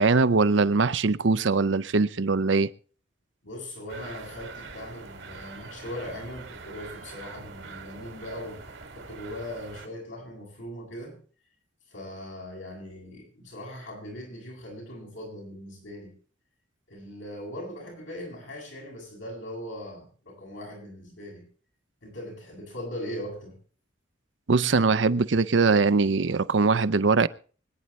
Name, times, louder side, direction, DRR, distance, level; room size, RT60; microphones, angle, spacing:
voice 1, 0.0-2.7 24.5-27.3, right 4 dB, 75° right, 0.6 m, -22 dB
voice 2, 3.4-8.6 8.9-11.2 11.9-16.1 16.9-21.5 22.0-23.6, left 1 dB, 90° left, 7.8 m, -39 dB
sound 1, 3.9-9.9, right 4 dB, 90° right, 2.1 m, -44 dB
25.0 x 9.6 x 3.2 m
head